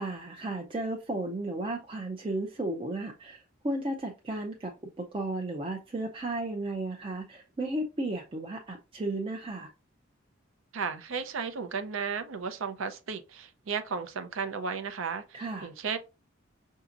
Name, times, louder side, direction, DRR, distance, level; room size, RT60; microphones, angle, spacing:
voice 1, 0.0-9.7 15.3-15.7, right 2 dB, 25° right, 0.5 m, -34 dB
voice 2, 10.7-16.0, right 5 dB, 75° right, 0.5 m, -34 dB
5.8 x 2.7 x 2.5 m
head